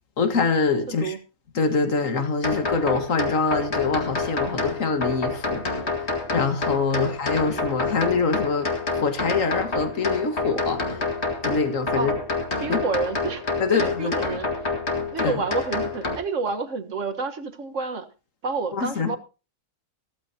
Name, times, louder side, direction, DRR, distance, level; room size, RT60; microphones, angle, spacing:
voice 1, 0.2-1.1 1.6-5.6 6.3-8.7 9.0-11.0 11.4-12.1 12.7-12.8 13.6-14.1 15.2-15.4 18.7-19.2, left 4 dB, 80° left, 2.1 m, -24 dB
voice 2, 0.9-1.2 6.9-7.1 12.0-12.1 12.6-13.4 13.7-14.7 15.1-18.1 18.4-19.2, right 4 dB, 70° right, 1.7 m, -29 dB
sound 1, 2.4-16.2, left 3 dB, 55° left, 2.4 m, -28 dB
15.5 x 14.5 x 2.8 m
omnidirectional pair, 1.4 m